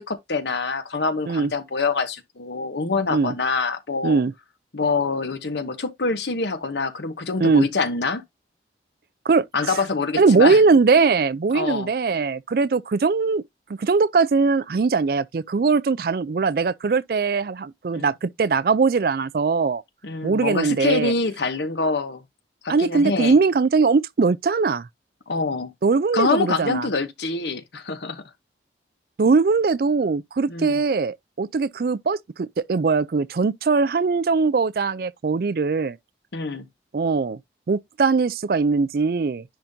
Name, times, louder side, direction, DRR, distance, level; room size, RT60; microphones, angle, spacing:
voice 1, 0.0-4.2 4.7-8.2 9.5-10.6 11.5-11.9 17.9-18.1 20.0-22.2 22.6-23.4 25.3-25.7 26.1-28.2 30.5-30.8 36.3-36.7, left 3 dB, 75° left, 1.0 m, -25 dB
voice 2, 10.2-13.4 13.7-19.8 20.2-21.1 22.7-24.9 25.8-26.9 29.2-36.0 36.9-37.4 37.7-39.4, right 4 dB, 55° right, 0.4 m, -20 dB
10.0 x 3.7 x 2.7 m
head